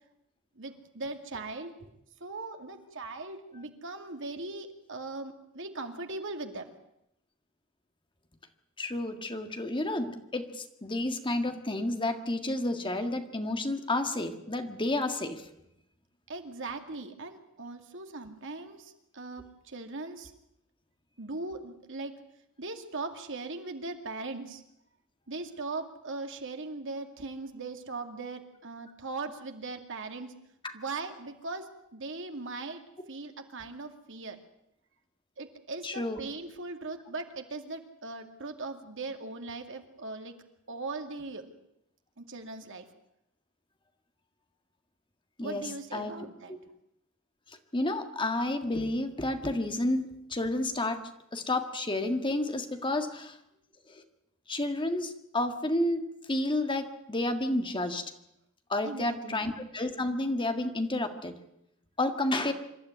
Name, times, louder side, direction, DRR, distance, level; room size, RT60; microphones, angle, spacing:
voice 1, 0.6-1.7 2.2-6.7 16.3-20.3 21.2-22.1 22.6-24.6 25.3-30.3 30.7-32.8 33.1-34.4 35.4-40.4 40.7-41.5 42.2-42.9 45.4-46.5 58.8-59.5, right 3 dB, 65° right, 5 dB, 2.3 m, -39 dB
voice 2, 8.8-15.4 30.6-30.7 35.8-36.2 45.4-45.6 45.9-46.1 47.7-51.0 51.3-53.4 53.9-54.0 54.5-56.0 56.3-58.0 58.7-61.4 62.0-62.5, left 1 dB, 25° left, 6 dB, 1.8 m, -30 dB
26.0 x 12.5 x 9.4 m, 0.81 s
head